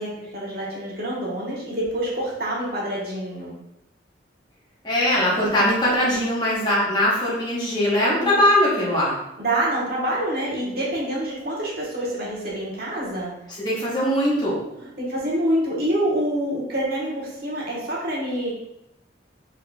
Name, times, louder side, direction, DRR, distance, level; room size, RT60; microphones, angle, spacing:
voice 1, 0.0-3.5 8.2-8.4 9.4-13.3 14.8-18.5, right 1 dB, 55° right, -5 dB, 1.3 m, -26 dB
voice 2, 4.8-9.1 13.6-14.6, left 1 dB, 20° left, -7 dB, 1.1 m, -21 dB
4.2 x 3.7 x 2.3 m, 0.86 s
head